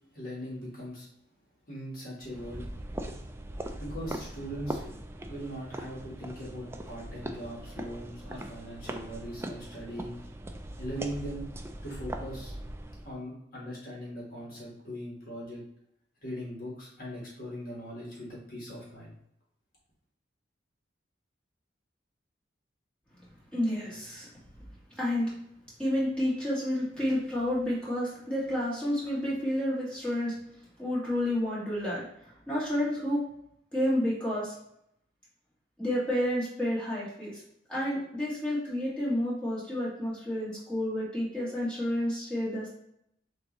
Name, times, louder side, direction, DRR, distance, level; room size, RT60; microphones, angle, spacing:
voice 1, 0.1-1.1 1.7-2.7 3.8-4.9 5.3-10.2 10.8-11.4 11.8-12.5 13.0-15.6 16.2-19.1, equal, 50° left, -4 dB, 1.4 m, -40 dB
sound 1, 2.2-13.1, right 1 dB, 15° right, 0.3 m, -40 dB
voice 2, 23.5-24.3 24.9-25.3 25.8-30.4 30.8-33.2 33.7-34.5 35.8-37.4 37.7-42.7, left 1 dB, 5° left, -8 dB, 1.8 m, -30 dB
6.2 x 2.7 x 3.0 m, 0.75 s
head